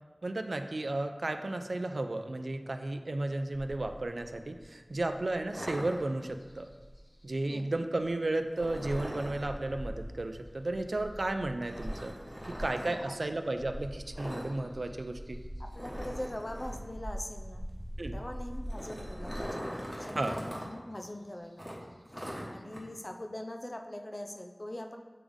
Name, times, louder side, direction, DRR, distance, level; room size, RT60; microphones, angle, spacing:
voice 1, 0.2-6.7 7.2-12.1 12.6-15.4 18.0-18.2 20.1-20.3, right 2 dB, 80° right, 6 dB, 0.4 m, -33 dB
sound 1, 3.5-7.2 7.7-7.8 8.0-8.1 8.4-19.5, equal, 15° right, 0.8 m, -43 dB
sound 2, 5.5-6.5 8.5-9.5 11.7-12.9 14.1-14.5 14.8-14.9 15.3-15.4 15.7-16.8 18.4-20.7 21.0-21.1 21.6-22.8, equal, 10° left, 1.3 m, -41 dB
voice 2, 7.5-7.9 12.8-13.8 15.6-17.6 18.1-19.6 20.0-21.9 22.5-25.0, left 1 dB, 40° left, 4 dB, 0.6 m, -42 dB
8.4 x 3.5 x 3.6 m, 1.3 s
wide cardioid pair, 40°, 0 cm